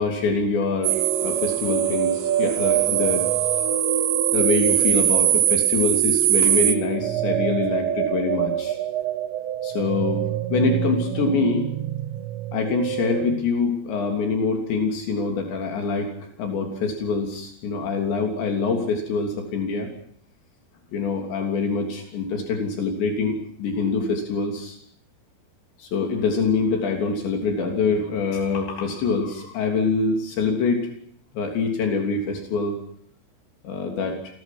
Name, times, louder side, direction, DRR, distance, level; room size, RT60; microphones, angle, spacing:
voice 1, 0.0-3.3 4.3-8.8 9.6-10.2 10.5-11.7 12.5-16.1 16.4-19.9 20.9-24.8 25.8-30.8 31.4-32.8 33.6-34.2, left 4 dB, 75° left, 3 dB, 5.5 m, -25 dB
sound 1, 0.8-13.4, right 12 dB, 90° right, 3.6 m, -23 dB
28.5 x 22.0 x 6.2 m, 0.64 s
omnidirectional pair, 5.1 m